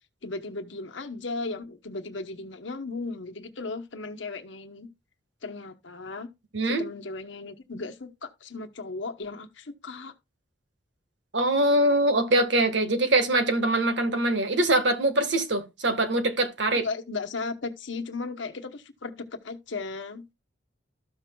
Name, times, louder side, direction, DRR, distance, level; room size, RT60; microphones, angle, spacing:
voice 1, 0.2-4.9 5.4-6.3 6.6-10.1 16.7-20.3, left 3 dB, 75° left, 1.0 m, -36 dB
voice 2, 6.5-6.8 11.3-16.9, right 1 dB, 70° right, 1.5 m, -23 dB
13.5 x 6.0 x 2.3 m
head